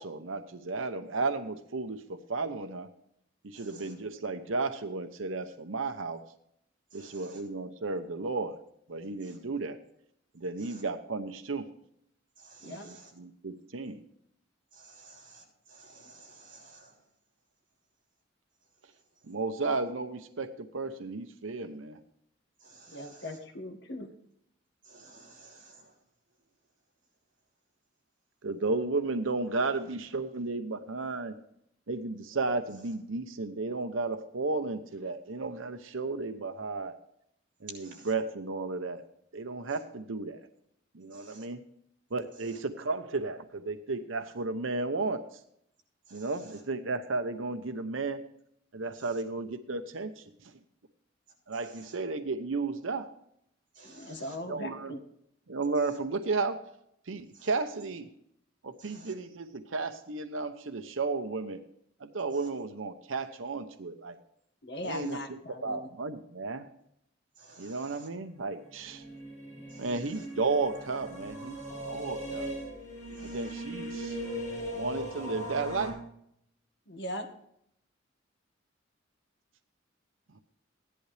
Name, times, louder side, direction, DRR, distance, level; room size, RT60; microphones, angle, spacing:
voice 1, 0.0-2.9 3.4-6.2 6.9-8.6 8.9-9.8 10.3-11.7 12.6-14.0 19.3-22.0 28.4-31.3 31.9-37.0 37.8-39.1 39.3-40.4 40.9-41.6 42.1-45.4 46.1-48.2 48.7-50.5 51.5-53.1 54.4-54.9 55.5-56.6 57.1-58.1 58.6-61.6 62.0-64.2 64.8-66.7 67.6-69.0 69.8-71.6 71.8-72.5 73.2-74.2 74.7-76.0, right 3 dB, 85° right, 8 dB, 0.8 m, -33 dB
voice 2, 3.5-3.9 6.9-7.4 9.2-9.4 10.6-10.8 12.4-13.1 14.7-17.1 18.6-19.4 22.6-23.4 24.8-26.0 37.7-38.1 39.7-39.8 41.1-41.5 42.3-42.6 46.1-46.6 49.0-49.2 51.5-52.0 53.7-54.4 55.7-56.0 57.3-57.5 58.8-59.1 62.3-62.5 64.8-65.1 67.3-68.1 69.7-70.3 73.1-73.6, right 3 dB, 45° right, -2 dB, 5.6 m, -54 dB
voice 3, 22.9-24.1 53.8-55.0 64.6-65.9 76.9-77.3, equal, 60° left, 5 dB, 1.8 m, -39 dB
sound 1, 68.7-75.9, right 1 dB, 20° left, 5.6 m, -39 dB
16.0 x 11.0 x 3.3 m, 0.72 s
head